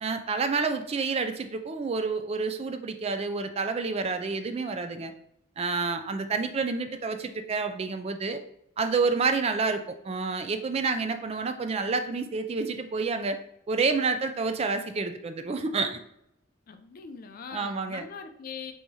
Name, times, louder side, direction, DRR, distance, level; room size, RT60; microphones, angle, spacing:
voice 1, 0.0-5.1 5.6-8.4 8.8-13.4 13.7-16.0 17.5-18.0, right 4 dB, 30° right, 8 dB, 0.3 m, -29 dB
voice 2, 16.7-18.7, left 6 dB, 45° left, 8 dB, 0.4 m, -41 dB
3.5 x 3.1 x 4.0 m, 0.76 s
head